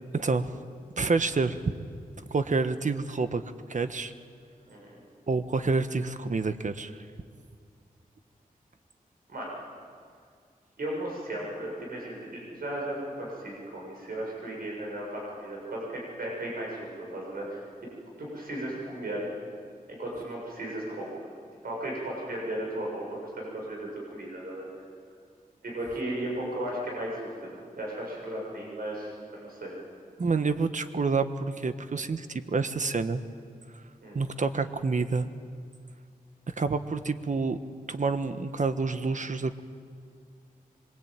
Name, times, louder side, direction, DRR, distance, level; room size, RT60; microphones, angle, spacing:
voice 1, 0.1-0.6 1.0-1.7 2.3-3.4 3.7-4.1 5.3-6.9 30.2-33.2 34.1-35.3 36.5-37.6 37.9-39.6, right 4 dB, 55° right, 10 dB, 1.4 m, -28 dB
voice 2, 4.7-5.0 9.3-9.5 10.8-17.6 18.2-19.3 19.9-21.1 21.6-24.7 25.6-29.7 34.0-34.2, right 1 dB, 85° right, -2 dB, 7.4 m, -35 dB
26.0 x 23.0 x 9.1 m, 2.2 s
cardioid pair, 55°, 15 cm